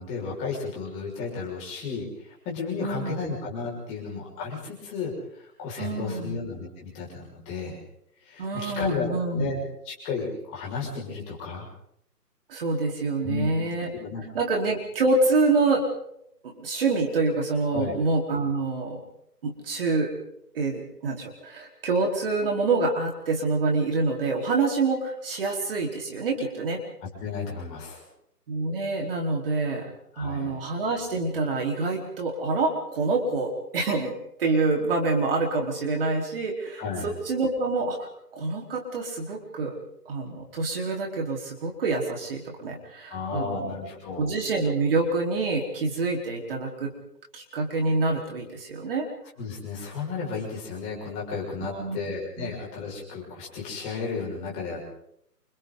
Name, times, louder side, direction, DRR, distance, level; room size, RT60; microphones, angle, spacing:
voice 1, 0.0-5.1 5.4-7.8 8.3-9.6 9.8-11.7 13.2-14.2 17.7-18.0 27.2-28.0 30.1-30.5 36.8-37.1 43.1-44.3 49.4-54.9, left 4 dB, 15° left, -3 dB, 6.2 m, -33 dB
voice 2, 2.8-3.1 5.8-6.4 8.4-9.5 12.5-13.9 14.3-15.8 16.4-19.0 19.4-20.1 20.5-26.8 28.5-34.1 34.4-38.1 38.3-39.7 40.1-43.7 44.2-46.9 47.3-49.1 51.6-52.0 52.4-52.5, right 3 dB, 35° right, 0 dB, 4.5 m, -26 dB
29.0 x 27.5 x 4.1 m, 0.75 s
hypercardioid pair, 160°, 48 cm